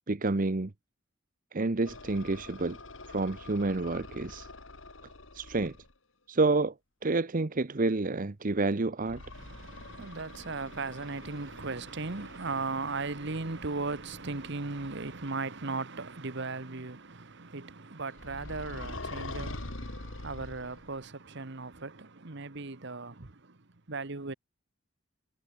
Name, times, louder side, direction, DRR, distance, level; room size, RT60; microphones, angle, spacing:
voice 1, 0.1-0.7 1.5-2.8 3.1-4.5 5.3-5.7 6.3-6.7 7.0-9.2, right 3 dB, 40° right, 0.8 m, -29 dB
sound 1, 1.8-5.9 9.0-15.3 18.2-21.0, left 2 dB, 70° left, 3.2 m, -45 dB
voice 2, 9.3-23.6 23.9-24.3, right 3 dB, 60° right, 1.4 m, -37 dB
head